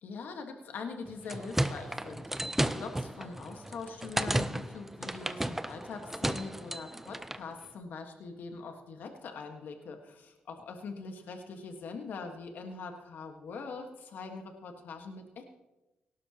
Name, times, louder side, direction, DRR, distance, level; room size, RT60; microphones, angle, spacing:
voice 1, 0.0-15.4, left 4 dB, 75° left, 5 dB, 1.4 m, -43 dB
sound 1, 1.1-7.5, right 1 dB, 10° right, 0.6 m, -34 dB
17.5 x 12.0 x 2.9 m, 1.0 s
cardioid pair, 65°, 3 cm